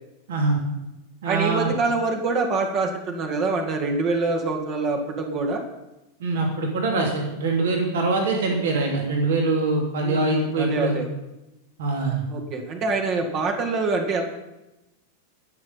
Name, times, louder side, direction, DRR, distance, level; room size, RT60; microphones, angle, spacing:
voice 1, 0.3-0.6 1.2-1.7 6.2-11.0 11.8-12.3, right 3 dB, 60° right, 1 dB, 3.2 m, -23 dB
voice 2, 1.3-5.6 10.0-11.1 12.3-14.2, right 3 dB, 35° right, 3 dB, 2.0 m, -25 dB
20.0 x 7.1 x 5.5 m, 0.96 s
figure-of-eight pair, 90°, 0 cm